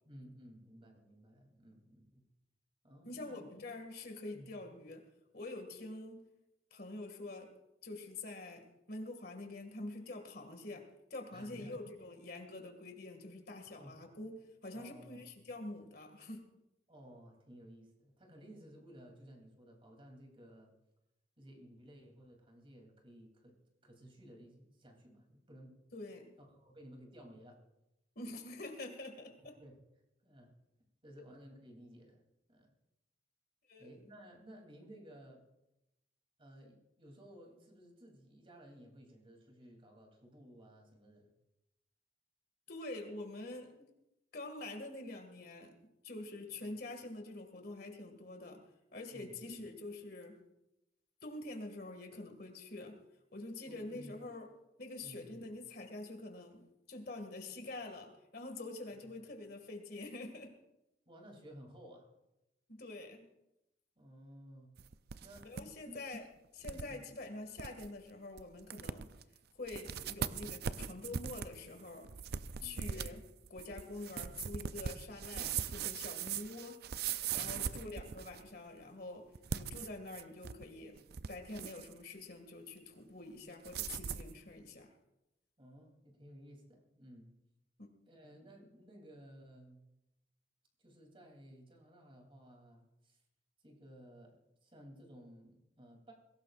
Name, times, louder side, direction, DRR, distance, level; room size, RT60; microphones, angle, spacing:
voice 1, 0.0-2.2 2.8-3.5 4.3-4.5 11.3-11.8 13.7-13.9 14.7-15.3 16.9-20.7 21.4-23.5 23.8-25.8 26.4-27.6 29.6-29.8 30.2-30.5 31.0-32.2 32.5-32.7 33.8-35.4 36.4-41.3 49.1-49.4 53.7-54.1 55.0-55.3 59.0-59.1 61.1-62.1 64.0-64.8 65.2-65.5 65.8-66.0 66.6-67.1 69.8-70.0 72.6-73.0 77.3-77.7 85.6-87.3 88.1-89.8 90.8-93.2 93.6-96.1, equal, 30° right, 1 dB, 3.1 m, -56 dB
voice 2, 3.0-5.0 5.3-6.2 6.7-7.5 7.8-16.4 25.9-26.3 28.2-29.6 33.7-33.9 42.7-43.9 44.3-45.7 46.0-48.6 48.9-50.4 51.2-53.0 53.3-54.5 54.8-60.5 62.7-63.3 65.4-66.2 66.5-69.1 69.5-72.1 72.6-73.2 73.5-76.8 77.3-79.3 79.5-81.0 81.3-84.9 87.8-87.9, left 2 dB, 55° left, 5 dB, 2.1 m, -46 dB
sound 1, 64.8-65.6 66.0-66.1 66.6-66.9 67.3-67.4 67.6-67.9 68.4-68.5 68.7-69.2 69.7-78.5 79.4-80.6 81.0-81.9 83.6-84.3, right 7 dB, 60° right, 0.5 m, -40 dB
22.0 x 17.5 x 2.5 m, 0.90 s
head